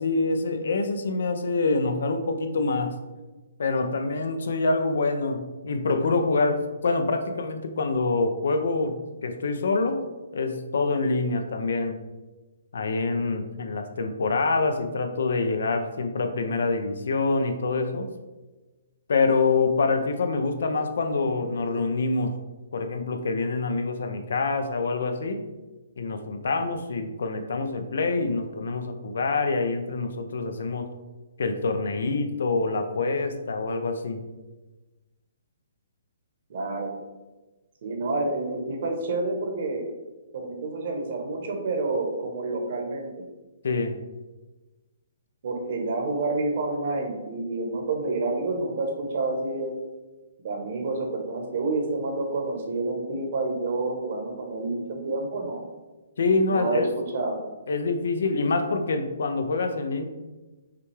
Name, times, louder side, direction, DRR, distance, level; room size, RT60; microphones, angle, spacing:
voice 1, 0.0-2.9 3.6-8.9 9.2-12.0 12.7-18.1 19.1-22.4 22.7-25.4 26.0-30.9 31.4-34.2 43.6-44.0 56.2-56.9 57.7-60.0, left 3 dB, 70° left, 7 dB, 0.5 m, -26 dB
voice 2, 36.5-36.9 37.8-39.8 40.3-43.3 45.4-49.7 50.4-55.6 56.4-57.4, right 2 dB, 50° right, 2 dB, 1.0 m, -29 dB
5.7 x 2.3 x 3.2 m, 1.2 s
hypercardioid pair, 160°, 0 cm